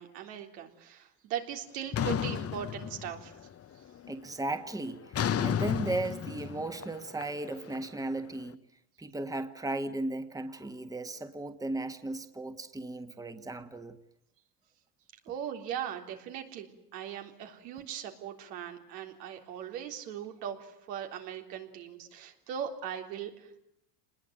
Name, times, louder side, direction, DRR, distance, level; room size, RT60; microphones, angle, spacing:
voice 1, 0.0-3.4 15.3-23.6, right 9 dB, 80° right, 3.7 m, -39 dB
sound 1, 1.9-3.5 3.8-4.3 5.1-8.2, left 9 dB, 30° left, 1.0 m, -33 dB
voice 2, 4.1-8.6 9.0-14.0, right 2 dB, 5° right, 1.6 m, -36 dB
26.5 x 20.5 x 9.3 m
supercardioid pair, 100°, 47 cm